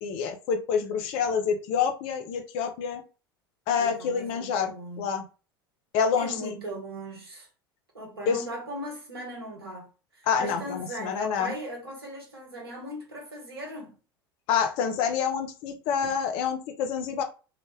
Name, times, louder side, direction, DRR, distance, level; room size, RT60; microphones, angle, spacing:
voice 1, 0.0-3.0 3.7-4.7 5.0-5.2 5.9-6.6 8.3-8.4 10.3-11.5 14.5-17.2, left 6 dB, 45° left, 0.4 m, -27 dB
voice 2, 3.8-5.1 6.2-7.5 7.9-9.9 10.1-14.0, right 1 dB, 75° right, 0.9 m, -38 dB
2.1 x 2.1 x 3.2 m
figure-of-eight pair, 75°, 13 cm